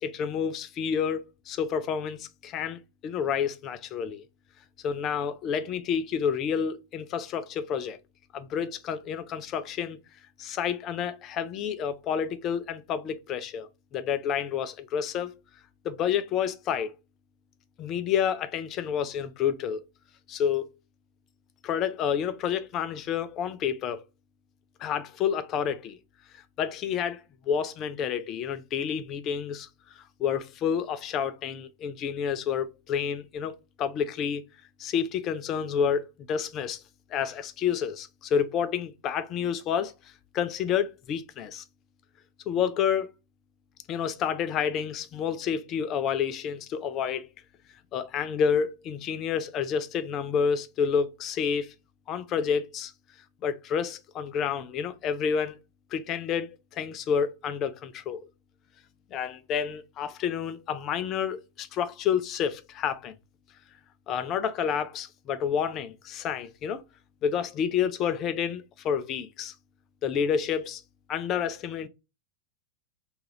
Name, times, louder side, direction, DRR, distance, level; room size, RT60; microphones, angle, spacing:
voice 1, 0.0-4.2 4.8-8.0 8.3-10.0 10.4-15.3 15.8-16.9 17.8-19.8 20.3-20.7 21.6-24.0 24.8-26.0 26.6-27.2 27.5-29.7 30.2-34.4 34.8-36.0 36.3-36.8 37.1-39.9 40.3-41.6 42.5-43.1 43.9-47.3 47.9-51.7 52.1-52.9 53.4-55.6 55.9-58.3 59.1-63.1 64.1-66.8 67.2-69.5 70.0-70.8 71.1-71.9, left 7 dB, 35° left, 0.4 m, -29 dB
2.7 x 2.4 x 3.0 m
figure-of-eight pair, 90°, 0 cm